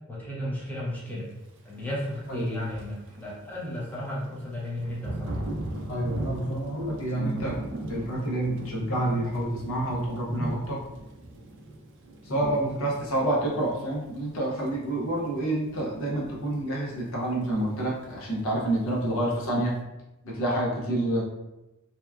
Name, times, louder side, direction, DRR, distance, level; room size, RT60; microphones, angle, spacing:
voice 1, 0.1-1.3 1.6-5.3, left 1 dB, 10° left, -7 dB, 0.6 m, -34 dB
Thunder / Rain, 1.7-19.8, right 1 dB, 60° right, 0.4 m, -40 dB
voice 2, 2.3-2.7 5.9-7.6 7.9-10.8 12.3-19.8 20.2-21.2, right 1 dB, 65° left, -3 dB, 0.6 m, -28 dB
2.8 x 2.2 x 2.3 m, 0.98 s
head